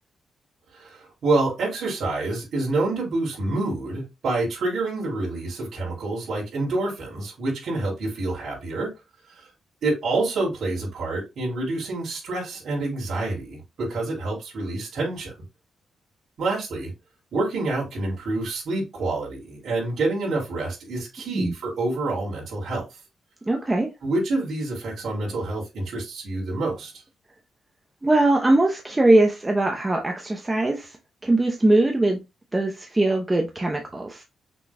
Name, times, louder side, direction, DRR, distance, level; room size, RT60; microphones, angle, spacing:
voice 1, 0.7-8.9 9.3-9.5 9.8-15.3 16.4-16.9 17.3-22.9 24.0-26.9, right 2 dB, 65° right, 3.0 m, -27 dB
voice 2, 23.5-23.9 28.0-31.0 31.2-32.2 32.5-34.2, right 2 dB, 15° right, 0.8 m, -21 dB
6.1 x 3.8 x 2.2 m
cardioid pair, 110°, 0 cm